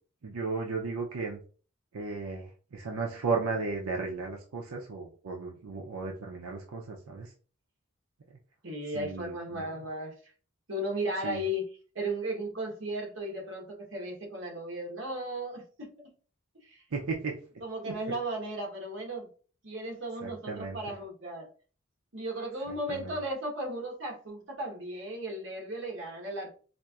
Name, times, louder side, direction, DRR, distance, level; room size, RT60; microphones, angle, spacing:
voice 1, 0.2-1.4 1.9-7.3 8.9-9.6 11.2-11.4 16.9-17.4 17.9-18.0 20.2-20.8 22.9-23.2, right 4 dB, 85° right, 0.5 m, -35 dB
voice 2, 8.6-10.3 10.7-11.7 11.9-16.1 16.5-16.8 17.6-19.3 19.6-21.5 22.1-26.5, right 1 dB, 55° right, 1.1 m, -35 dB
4.2 x 2.5 x 2.3 m
head